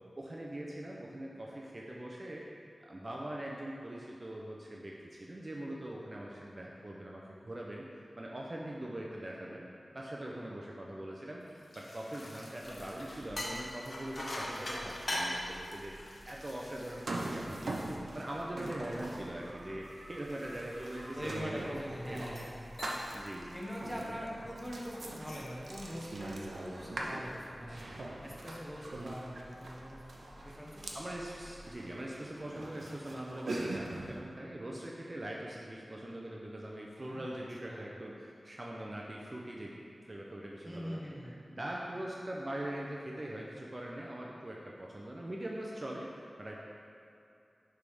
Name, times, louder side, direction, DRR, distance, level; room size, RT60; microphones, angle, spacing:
voice 1, 0.2-2.4 2.8-7.9 8.2-11.4 11.7-21.6 22.1-22.4 23.1-23.6 30.9-46.6, right 1 dB, 40° right, -3 dB, 0.7 m, -42 dB
sound 1, 11.4-18.2 18.7-21.7 22.2-22.5 22.8-23.3 23.6-23.9 25.0-25.6, left 1 dB, 60° left, 0.9 m, -43 dB
sound 2, 12.6-31.7, equal, 35° left, 0.6 m, -57 dB
sound 3, 16.9-34.2, right 2 dB, 80° right, 0.7 m, -43 dB
voice 2, 21.1-22.5 23.5-27.8 28.2-30.0 30.4-30.9 37.0-37.4 37.6-37.8 40.6-41.4, equal, ahead, -4 dB, 1.4 m, -43 dB
6.6 x 3.5 x 4.9 m, 2.7 s
cardioid pair, 40°, 0 cm